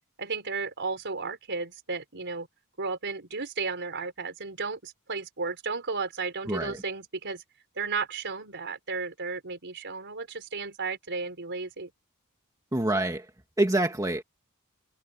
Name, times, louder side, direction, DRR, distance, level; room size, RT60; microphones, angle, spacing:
voice 1, 0.2-2.5 2.8-7.4 7.8-11.9, right 4 dB, 55° right, 4.4 m, -34 dB
voice 2, 6.5-6.8 12.7-13.3 13.6-14.2, right 1 dB, 15° right, 1.7 m, -26 dB
head